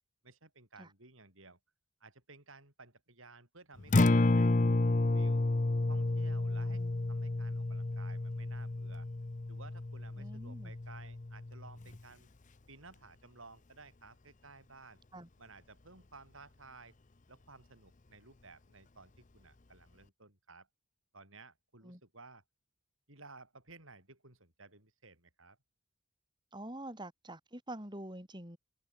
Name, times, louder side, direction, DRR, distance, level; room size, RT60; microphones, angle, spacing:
voice 1, 0.2-1.6 2.0-5.5 5.9-9.1 9.5-12.3 12.7-15.0 15.4-17.0 17.3-20.7 21.1-22.4 23.1-25.6, right 3 dB, 65° right, 7.9 m, -56 dB
Acoustic guitar, 3.8-12.0, left 2 dB, 35° left, 0.7 m, -31 dB
voice 2, 10.2-10.7 15.1-15.3 21.8-22.0 26.5-28.6, right 1 dB, 20° right, 6.4 m, -46 dB
head